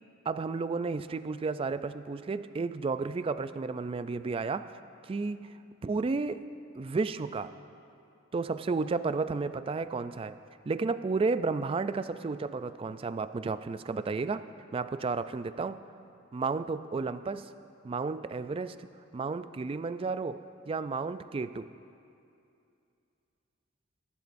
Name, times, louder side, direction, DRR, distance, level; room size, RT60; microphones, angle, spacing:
voice 1, 0.3-5.5 5.8-6.4 6.8-7.5 8.3-10.4 10.6-14.4 14.7-15.8 16.3-17.5 17.8-18.9 19.1-21.7, right 4 dB, 30° right, 12 dB, 0.3 m, -32 dB
21.0 x 12.0 x 2.6 m, 2.6 s
head